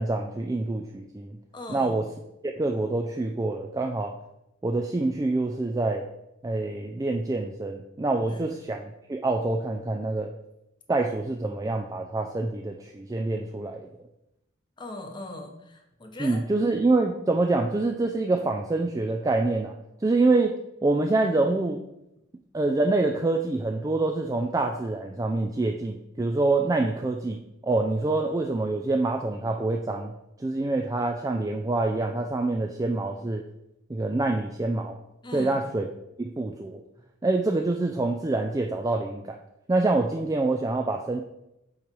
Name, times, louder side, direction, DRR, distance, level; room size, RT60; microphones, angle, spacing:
voice 1, 0.0-1.4 1.7-2.0 2.4-4.2 4.6-6.1 6.4-10.3 10.9-13.9 16.2-19.7 20.0-20.5 20.8-21.8 22.5-30.1 30.4-33.4 33.9-35.0 35.3-35.9 36.2-36.8 37.2-39.4 39.7-41.2, right 2 dB, 15° right, 3 dB, 0.3 m, -26 dB
voice 2, 1.5-2.1 8.3-8.6 14.8-16.4 35.2-35.6, left 1 dB, 25° left, 3 dB, 0.8 m, -40 dB
7.2 x 3.2 x 5.2 m, 0.87 s
head